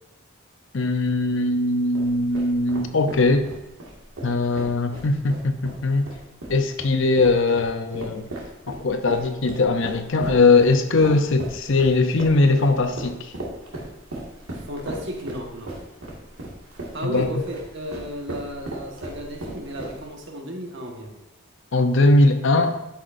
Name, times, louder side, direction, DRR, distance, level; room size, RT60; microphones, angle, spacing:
voice 1, 0.7-3.5 4.2-6.1 6.5-8.3 8.7-13.3 17.0-17.3 21.7-22.8, left 3 dB, 60° left, 8 dB, 0.7 m, -20 dB
sound 1, 1.9-20.2, right 1 dB, 85° right, 2.0 m, -37 dB
voice 2, 14.5-15.7 16.9-21.2, equal, 55° right, 1 dB, 1.5 m, -34 dB
13.0 x 5.8 x 2.6 m, 0.93 s
head